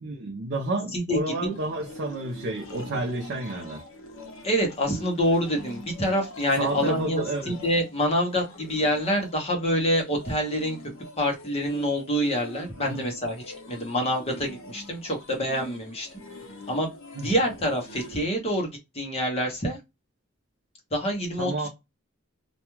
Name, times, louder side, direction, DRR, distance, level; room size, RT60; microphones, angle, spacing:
voice 1, 0.0-3.8 6.6-7.6 12.8-13.1 17.2-17.3 21.4-21.7, right 2 dB, 55° right, 0.5 m, -30 dB
voice 2, 0.9-1.5 4.4-10.8 11.2-16.1 16.7-16.9 17.2-18.7 18.9-19.8 20.9-21.5, equal, 30° left, 0.8 m, -26 dB
sound 1, 1.5-18.2, left 1 dB, 65° left, 0.7 m, -44 dB
2.3 x 2.2 x 3.0 m
head